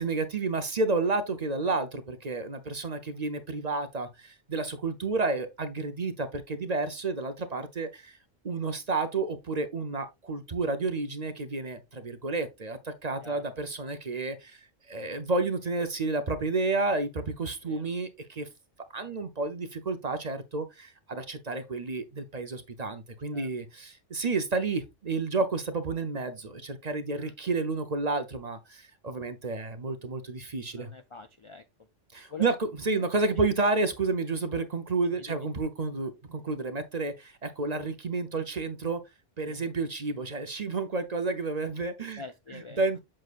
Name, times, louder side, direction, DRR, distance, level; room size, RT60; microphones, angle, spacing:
voice 1, 0.0-8.2 8.4-18.5 18.9-30.9 32.1-39.0 39.4-42.2 42.5-43.0, right 3 dB, 40° right, 0.7 m, -31 dB
voice 2, 30.7-31.6 32.3-32.5 32.9-33.1 33.4-33.5 35.0-35.5 39.4-39.6 42.2-43.0, left 4 dB, 55° left, 0.3 m, -45 dB
7.6 x 6.3 x 2.4 m
omnidirectional pair, 1.3 m